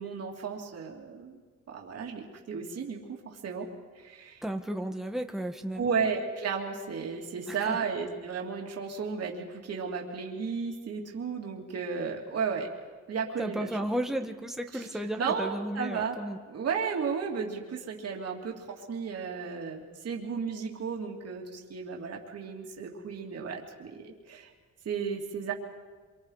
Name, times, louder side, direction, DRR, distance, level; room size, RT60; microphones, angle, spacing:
voice 1, 0.0-1.4 1.7-3.0 3.2-3.7 3.9-4.4 5.7-12.7 13.1-13.9 14.7-14.9 15.2-16.2 16.5-24.5 24.8-25.5, right 5 dB, 55° right, 0 dB, 3.0 m, -34 dB
voice 2, 4.4-5.9 7.5-7.8 13.4-16.4, right 1 dB, ahead, 4 dB, 1.6 m, -34 dB
26.5 x 24.5 x 5.0 m, 1.4 s
cardioid pair, 90°, 30 cm